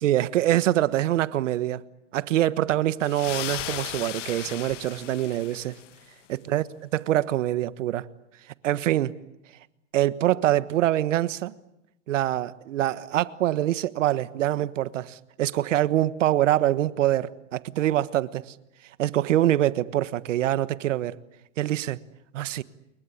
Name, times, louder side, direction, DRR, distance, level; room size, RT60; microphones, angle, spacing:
voice 1, 0.0-1.8 2.1-5.7 6.5-6.6 7.1-8.1 8.6-9.1 9.9-11.5 12.1-18.5 19.0-21.2 21.6-22.0 22.3-22.6, right 13 dB, 75° right, 1.4 m, -24 dB
sound 1, 3.0-6.1, left 13 dB, 70° left, 1.8 m, -36 dB
29.5 x 22.5 x 8.6 m
hypercardioid pair, 145°, 38 cm